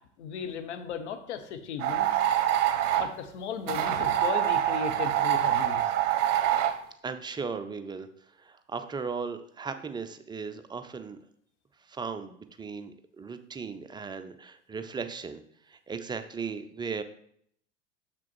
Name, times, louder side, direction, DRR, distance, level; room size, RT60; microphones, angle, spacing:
voice 1, 0.2-2.2 3.0-5.8, left 7 dB, 65° left, 7 dB, 1.1 m, -36 dB
sound 1, 1.8-3.1 3.7-6.8, right 11 dB, 55° right, 0.8 m, -25 dB
voice 2, 7.0-8.1 8.4-11.2 11.9-15.4 15.7-17.0, right 5 dB, 10° right, 8 dB, 0.5 m, -37 dB
6.7 x 6.0 x 4.4 m, 0.66 s
figure-of-eight pair, 80°, 37 cm